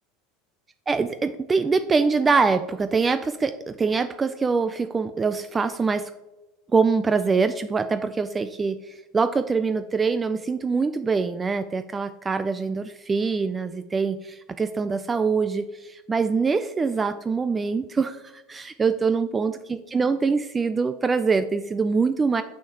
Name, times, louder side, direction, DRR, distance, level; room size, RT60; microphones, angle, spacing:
voice 1, 0.9-6.1 6.7-22.4, right 4 dB, 20° right, 10 dB, 0.3 m, -24 dB
6.5 x 6.1 x 2.8 m, 1.1 s
hypercardioid pair, 95°, 0 cm